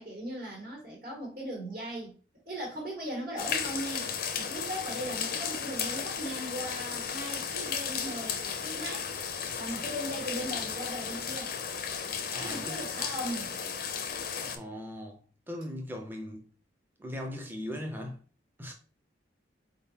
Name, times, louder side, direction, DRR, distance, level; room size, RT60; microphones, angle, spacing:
voice 1, 0.0-2.1 2.5-9.1 9.6-11.5 12.4-13.5, equal, 50° right, 1.6 m, -38 dB
sound 1, 3.4-14.6, left 7 dB, 55° left, 0.6 m, -34 dB
voice 2, 12.3-12.8 14.5-15.2 15.5-16.5 17.0-18.2 18.6-18.7, left 1 dB, 10° right, 0.7 m, -39 dB
4.0 x 3.8 x 2.7 m
head